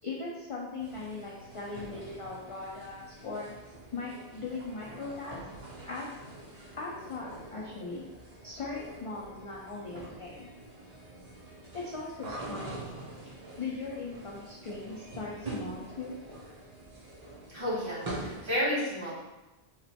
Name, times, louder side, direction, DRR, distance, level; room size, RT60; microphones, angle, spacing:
voice 1, 0.0-3.5 3.9-5.4 5.8-6.1 6.7-8.0 8.4-10.5 11.7-12.7 13.6-16.1, left 3 dB, 45° left, -4 dB, 0.4 m, -39 dB
sound 1, 0.8-18.6, right 2 dB, 45° right, 0.7 m, -45 dB
voice 2, 17.5-19.1, equal, 30° right, -10 dB, 1.2 m, -31 dB
3.1 x 2.1 x 4.0 m, 1.1 s
omnidirectional pair, 1.0 m